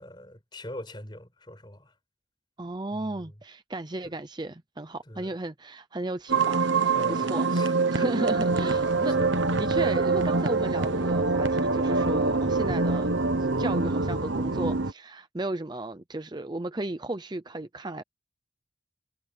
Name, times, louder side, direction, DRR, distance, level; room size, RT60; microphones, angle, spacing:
voice 1, 0.0-2.0 2.9-3.4 4.0-4.1 5.0-5.3 6.9-8.1 8.4-9.8 12.2-12.5, left 1 dB, 25° left, 5.0 m, -43 dB
voice 2, 2.6-7.6 7.9-9.2 9.6-13.1 13.6-18.0, right 2 dB, 25° right, 0.7 m, -34 dB
sound 1, 6.3-14.9, right 3 dB, 80° right, 1.2 m, -25 dB
head